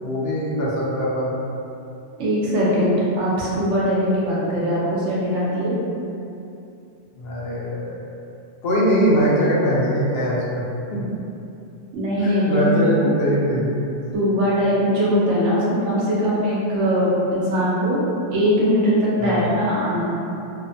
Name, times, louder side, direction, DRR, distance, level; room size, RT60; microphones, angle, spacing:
voice 1, 0.0-1.4 7.2-8.0 8.6-10.6 10.9-11.0 12.2-13.9 19.2-19.4, equal, 65° left, -6 dB, 0.8 m, -21 dB
voice 2, 2.2-5.8 11.9-12.9 14.1-18.0 18.3-20.0, equal, 85° right, -7 dB, 1.0 m, -21 dB
2.7 x 2.1 x 2.5 m, 2.7 s
omnidirectional pair, 1.2 m